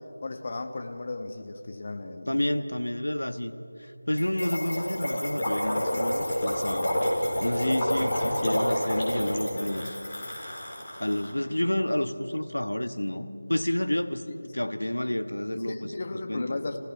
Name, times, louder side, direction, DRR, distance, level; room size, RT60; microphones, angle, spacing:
voice 1, 0.2-2.4 14.2-14.5 15.5-16.8, left 3 dB, 35° left, 5 dB, 1.5 m, -35 dB
voice 2, 2.3-3.5 3.8-7.0 7.4-10.0 11.0-14.3 14.5-15.9 16.3-16.6, left 1 dB, 80° left, 9 dB, 1.3 m, -29 dB
sound 1, 4.2-10.6, left 1 dB, 60° left, 5.1 m, -39 dB
Gurgling, 4.4-11.3, equal, 15° left, 4.9 m, -29 dB
29.0 x 17.0 x 6.0 m, 2.8 s
figure-of-eight pair, 170°, 0 cm